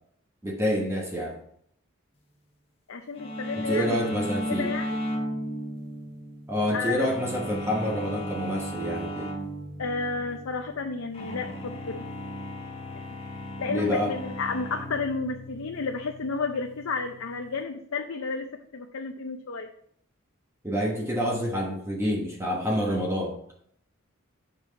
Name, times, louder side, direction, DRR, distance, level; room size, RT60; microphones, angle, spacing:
voice 1, 0.4-1.4 3.7-4.7 6.5-9.3 13.7-14.1 20.6-23.4, equal, 15° right, -1 dB, 1.1 m, -27 dB
voice 2, 2.9-4.0 4.5-4.9 6.7-7.1 9.8-12.1 13.6-18.5 18.7-19.7, left 4 dB, 80° left, 3 dB, 0.6 m, -31 dB
sound 1, 3.2-17.6, equal, 30° left, 1.0 m, -36 dB
7.2 x 5.4 x 4.0 m, 0.66 s
head